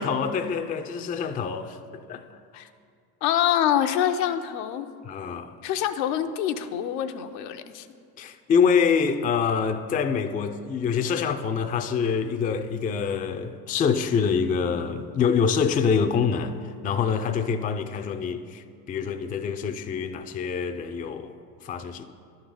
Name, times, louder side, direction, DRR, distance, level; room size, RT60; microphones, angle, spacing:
voice 1, 0.0-2.4 5.0-5.5 8.2-16.6 16.8-21.3 21.6-22.1, left 6 dB, 20° left, 0.3 m, -25 dB
voice 2, 3.2-4.9 5.6-7.9, left 10 dB, 80° left, 0.7 m, -25 dB
11.5 x 3.9 x 6.8 m
hypercardioid pair, 80°, 49 cm